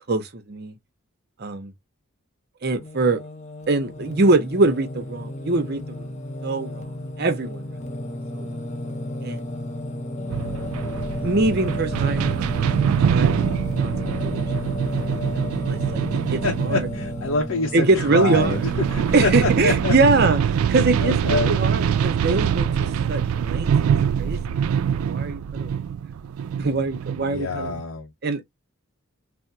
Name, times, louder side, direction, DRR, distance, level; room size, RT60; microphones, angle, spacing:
voice 1, 0.1-0.7 1.4-1.7 2.6-3.2 3.7-6.2 6.4-7.8 8.3-8.5 9.2-9.5 11.2-12.5 12.9-13.4 13.7-16.9 17.7-18.6 19.1-23.7 24.2-26.0 26.6-27.8 28.2-28.4, right 3 dB, 50° right, 0.6 m, -24 dB
Singing, 2.7-19.8, left 1 dB, 35° left, 0.6 m, -33 dB
sound 1, 10.3-27.8, right 8 dB, 80° right, 0.3 m, -24 dB
voice 2, 16.4-18.6 18.9-19.9 21.0-21.6 27.3-28.1, left 3 dB, 70° left, 0.7 m, -26 dB
3.4 x 2.0 x 2.6 m
head